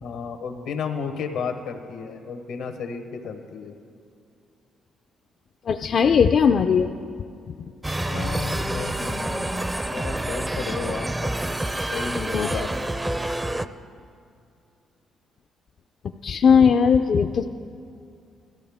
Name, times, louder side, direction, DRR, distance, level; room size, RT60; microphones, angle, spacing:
voice 1, 0.0-3.7 8.1-9.5 9.9-11.3 11.9-12.9, left 5 dB, 85° left, 5 dB, 1.1 m, -33 dB
voice 2, 5.7-6.9 12.3-12.5 16.2-17.4, left 6 dB, 55° left, 6 dB, 0.4 m, -18 dB
sound 1, 7.8-13.7, right 1 dB, 15° right, 0.4 m, -28 dB
16.5 x 13.5 x 3.5 m, 2.4 s
cardioid pair, 90°, 0 cm